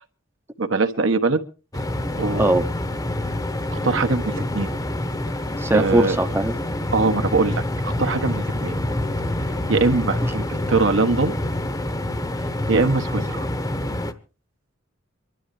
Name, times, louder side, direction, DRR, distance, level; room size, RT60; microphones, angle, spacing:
voice 1, 0.6-1.4 2.2-2.6 3.7-4.8 5.7-6.2 6.9-8.8 9.7-11.4 12.7-13.5, right 3 dB, 70° right, 7 dB, 1.4 m, -22 dB
sound 1, 1.7-14.1, left 1 dB, 20° left, 0.9 m, -27 dB
voice 2, 5.6-6.7 10.2-10.3, right 1 dB, 10° right, 7 dB, 0.8 m, -20 dB
24.0 x 12.5 x 3.3 m, 0.33 s
head